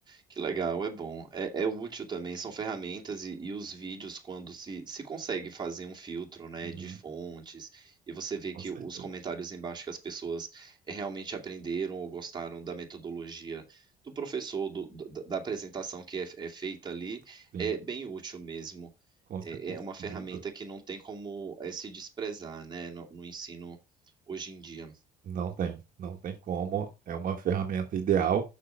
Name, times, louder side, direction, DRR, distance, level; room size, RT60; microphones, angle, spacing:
voice 1, 0.1-18.9 19.4-23.8 24.3-24.9, right 5 dB, 25° right, 1 dB, 2.4 m, -37 dB
voice 2, 25.3-28.4, right 8 dB, 55° right, 3 dB, 1.4 m, -31 dB
6.6 x 5.8 x 5.6 m, 0.27 s
cardioid pair, 110°, 17 cm